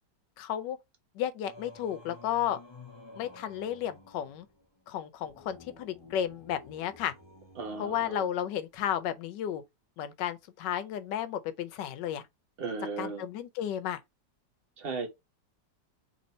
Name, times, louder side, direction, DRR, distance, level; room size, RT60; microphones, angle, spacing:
voice 1, 0.4-0.8 1.1-2.6 3.1-4.5 4.9-7.1 7.8-9.6 10.0-12.2 13.0-14.0, left 10 dB, 80° left, 1.3 m, -33 dB
Singing, 1.4-8.8, left 2 dB, 25° left, 0.6 m, -52 dB
voice 2, 7.6-8.3 12.6-13.2 14.8-15.1, right 4 dB, 40° right, 1.0 m, -36 dB
3.4 x 2.6 x 4.1 m
omnidirectional pair, 1.9 m